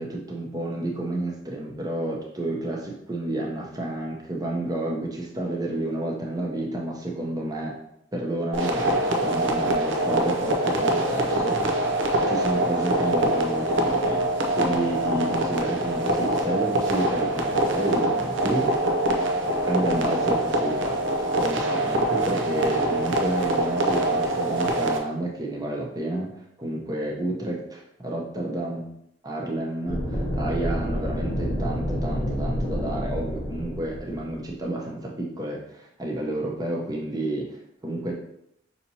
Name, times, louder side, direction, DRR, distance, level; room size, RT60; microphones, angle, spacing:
voice 1, 0.0-7.8 8.1-18.7 19.6-26.3 26.6-28.8 29.2-38.1, right 1 dB, 20° right, -2 dB, 0.8 m, -30 dB
sound 1, 8.5-25.0, right 1 dB, 90° right, 0.6 m, -24 dB
sound 2, 29.9-34.6, equal, 20° left, 0.9 m, -29 dB
5.7 x 2.8 x 2.8 m, 0.77 s
head